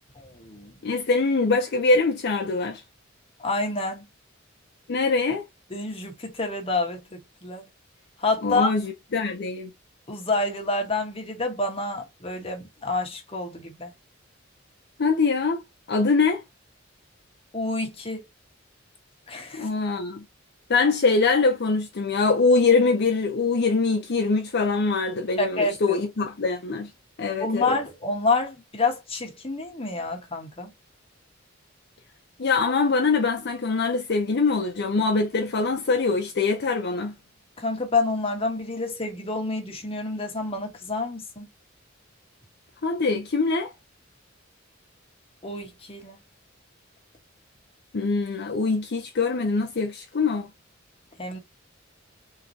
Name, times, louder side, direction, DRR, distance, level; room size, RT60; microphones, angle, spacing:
voice 1, 0.2-0.7 3.4-4.1 5.7-7.6 8.2-8.7 10.1-13.9 17.5-18.2 19.3-19.7 25.4-26.0 27.4-30.7 37.6-41.5 45.4-46.2 51.2-51.4, left 3 dB, 30° left, 1.2 m, -28 dB
voice 2, 0.8-2.8 4.9-5.4 8.4-9.7 15.0-15.6 15.9-16.4 19.6-20.2 20.7-26.9 27.2-27.8 32.4-37.1 42.8-43.7 47.9-50.5, left 4 dB, 55° left, 0.6 m, -23 dB
3.8 x 2.9 x 2.7 m
head